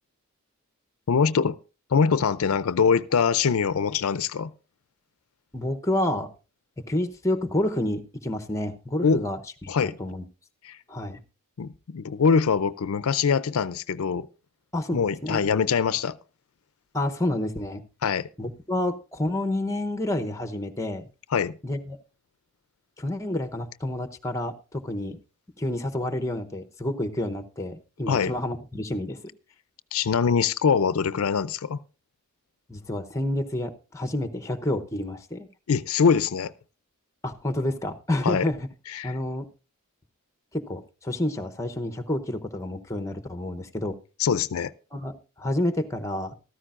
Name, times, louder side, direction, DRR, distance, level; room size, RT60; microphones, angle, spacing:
voice 1, 1.1-1.6 1.9-4.5 9.0-9.2 9.7-10.0 10.6-10.8 11.6-14.3 14.9-16.2 18.0-18.3 21.3-21.6 28.1-28.3 29.9-31.8 35.7-36.5 38.2-38.5 38.9-39.1 44.2-44.7, left 6 dB, 75° left, 0.5 m, -23 dB
voice 2, 5.5-6.3 6.8-10.2 10.9-11.2 14.7-15.4 16.9-17.8 18.4-21.1 21.6-22.0 23.0-25.2 25.6-29.2 32.7-35.5 37.2-38.7 39.0-39.5 40.5-44.0 44.9-46.4, left 1 dB, 15° left, 0.8 m, -29 dB
14.5 x 13.5 x 2.5 m
head